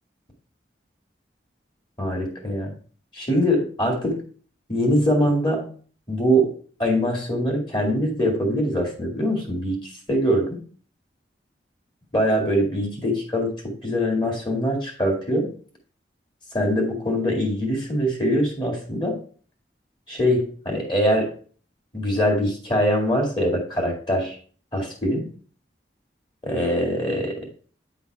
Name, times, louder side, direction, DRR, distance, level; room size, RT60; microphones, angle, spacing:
voice 1, 2.0-2.7 3.1-4.2 4.7-5.7 6.1-6.5 6.8-9.8 10.1-10.6 12.1-15.5 16.5-19.2 20.1-21.3 21.9-24.3 24.7-25.3 26.4-27.4, equal, 25° left, 1 dB, 2.1 m, -23 dB
9.1 x 3.9 x 4.6 m, 0.43 s
head